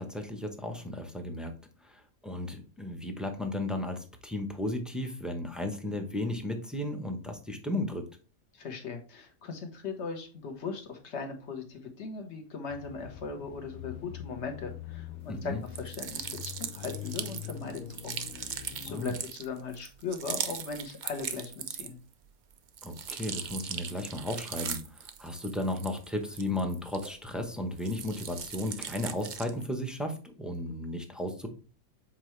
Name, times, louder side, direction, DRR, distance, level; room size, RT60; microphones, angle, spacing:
voice 1, 0.0-1.5 1.8-8.1 15.3-15.6 18.9-19.2 22.8-31.5, left 1 dB, ahead, 4 dB, 0.6 m, -34 dB
voice 2, 8.5-22.0, left 4 dB, 50° left, 5 dB, 1.4 m, -39 dB
sound 1, 12.7-19.1, left 11 dB, 75° left, 1.1 m, -44 dB
sound 2, 15.7-22.1 22.5-27.4 27.8-29.6, right 7 dB, 90° right, 0.4 m, -39 dB
7.6 x 4.4 x 3.2 m, 0.37 s
omnidirectional pair, 1.5 m